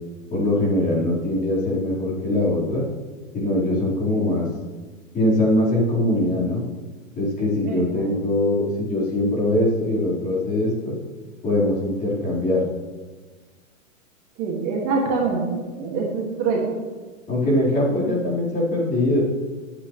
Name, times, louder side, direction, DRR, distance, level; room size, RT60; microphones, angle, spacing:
voice 1, 0.3-2.8 3.3-4.4 5.1-6.6 7.2-11.0 11.4-12.6 17.3-19.2, left 1 dB, 20° left, -7 dB, 4.4 m, -22 dB
voice 2, 14.4-15.5 15.8-16.6, right 4 dB, 35° right, -2 dB, 2.3 m, -24 dB
19.5 x 8.9 x 3.3 m, 1.3 s
hypercardioid pair, 150°, 41 cm